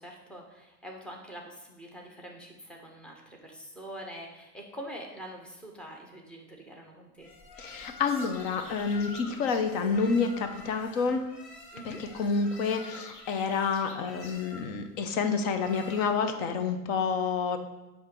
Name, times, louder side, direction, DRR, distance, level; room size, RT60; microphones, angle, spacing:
voice 1, 0.0-7.3 11.7-12.0, equal, 5° left, 1 dB, 0.4 m, -44 dB
sound 1, 7.2-16.4, left 2 dB, 45° left, 1.4 m, -47 dB
voice 2, 7.6-11.2 11.8-17.6, left 5 dB, 65° left, 7 dB, 0.9 m, -29 dB
8.5 x 2.9 x 5.8 m, 1.0 s
supercardioid pair, 160°, 41 cm